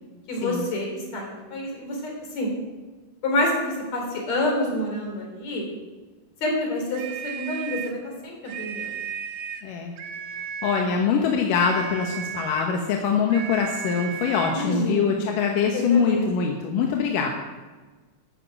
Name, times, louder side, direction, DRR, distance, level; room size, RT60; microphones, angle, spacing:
voice 1, 0.3-2.5 3.2-5.7 6.4-8.9 14.5-15.2 15.7-16.2, left 1 dB, 55° left, 0 dB, 4.7 m, -28 dB
sound 1, 6.9-8.0 8.4-9.7 10.0-10.9 11.5-12.8 13.3-14.6, right 8 dB, 65° right, 1.9 m, -35 dB
voice 2, 9.6-9.9 10.6-17.3, left 6 dB, 85° left, 1 dB, 2.8 m, -23 dB
13.0 x 9.3 x 7.7 m, 1.3 s
omnidirectional pair, 3.8 m